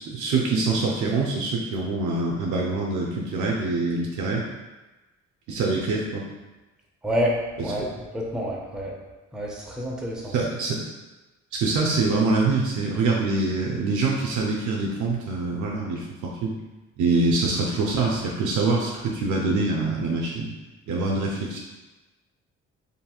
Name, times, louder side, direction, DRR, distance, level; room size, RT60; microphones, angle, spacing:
voice 1, 0.0-4.4 5.5-6.3 7.6-7.9 10.2-10.8 11.5-16.5 17.0-20.5 20.9-21.6, right 3 dB, 75° right, -2 dB, 0.5 m, -25 dB
voice 2, 7.0-7.3 7.6-7.8 8.1-8.9 9.3-10.3, equal, ahead, -3 dB, 0.5 m, -27 dB
2.8 x 2.6 x 2.3 m, 1.1 s
cardioid pair, 90°, 30 cm